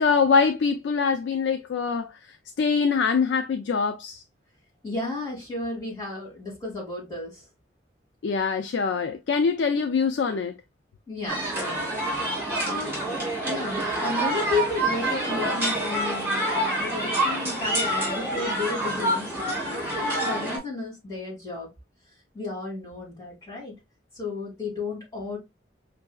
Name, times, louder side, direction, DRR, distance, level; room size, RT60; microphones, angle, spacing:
voice 1, 0.0-2.1 2.6-4.2 8.2-10.6, left 5 dB, 75° left, 0.4 m, -23 dB
voice 2, 4.8-7.4 11.1-11.9 12.6-13.0 13.4-21.7 22.3-23.7 24.1-25.4, left 3 dB, 20° left, 2.3 m, -33 dB
sound 1, 11.3-20.6, right 1 dB, 15° right, 2.0 m, -27 dB
5.4 x 2.6 x 2.2 m
head